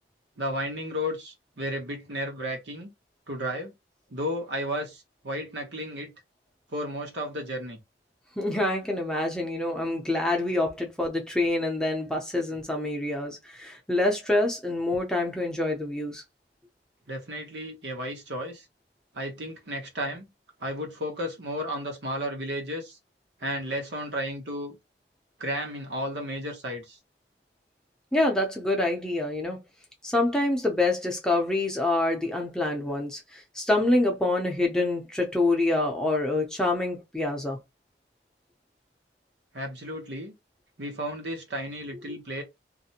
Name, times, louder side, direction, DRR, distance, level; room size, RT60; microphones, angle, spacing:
voice 1, 0.4-2.9 3.3-3.7 4.1-6.1 6.7-7.8 17.1-18.6 19.1-20.2 20.6-23.0 23.4-24.7 25.4-27.0 39.5-40.3 40.8-42.4, equal, 80° right, 0.9 m, -33 dB
voice 2, 8.4-16.2 28.1-29.6 30.0-37.6 42.1-42.2, left 2 dB, 5° left, 0.6 m, -26 dB
2.5 x 2.1 x 2.7 m
head